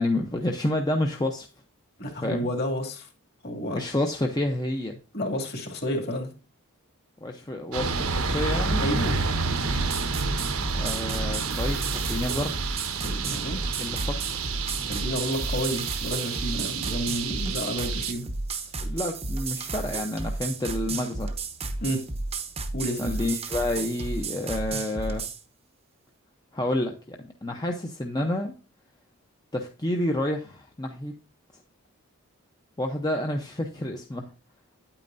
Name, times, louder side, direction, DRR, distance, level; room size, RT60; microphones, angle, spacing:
voice 1, 0.0-1.5 2.1-2.5 3.7-5.0 7.2-8.9 10.7-12.6 13.8-14.4 18.8-21.3 23.0-25.2 26.5-28.5 29.5-31.1 32.8-34.2, left 1 dB, 20° left, 2 dB, 0.7 m, -29 dB
voice 2, 2.0-3.1 3.4-3.8 5.1-6.3 8.8-9.3 13.0-13.8 14.8-18.3 21.8-22.1 22.7-23.1, equal, 45° left, 3 dB, 2.4 m, -30 dB
sound 1, 7.7-18.1, right 4 dB, 80° right, 1.1 m, -29 dB
sound 2, 9.6-25.4, right 3 dB, 30° right, 0.8 m, -33 dB
9.7 x 8.8 x 2.6 m, 0.33 s
head